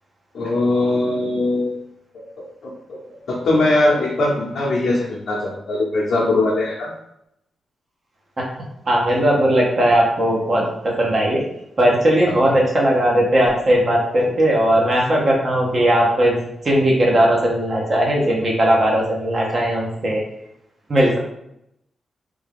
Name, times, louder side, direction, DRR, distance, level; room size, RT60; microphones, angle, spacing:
voice 1, 0.3-1.8 2.6-6.9 12.5-12.6, left 2 dB, 70° left, -6 dB, 0.7 m, -21 dB
voice 2, 8.9-11.4 11.8-20.2 20.9-21.2, right 1 dB, 40° right, -2 dB, 0.7 m, -18 dB
3.4 x 2.2 x 3.4 m, 0.80 s
wide cardioid pair, 145°, 0 cm